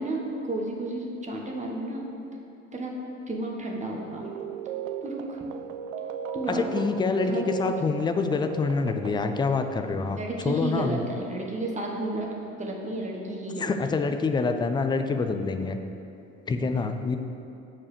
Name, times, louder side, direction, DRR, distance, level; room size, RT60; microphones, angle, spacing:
voice 1, 0.0-2.1 2.7-2.9 3.3-4.3 5.0-5.5 6.3-6.9 7.2-7.4 10.1-13.9, right 2 dB, 15° right, 0 dB, 1.4 m, -32 dB
chimetime melodie, 4.2-9.4, right 8 dB, 75° right, 0.5 m, -36 dB
voice 2, 6.5-10.2 10.4-11.0 13.6-15.8 16.5-17.2, left 4 dB, 10° left, 7 dB, 0.4 m, -26 dB
7.5 x 4.8 x 6.8 m, 2.8 s
figure-of-eight pair, 65°, 40 cm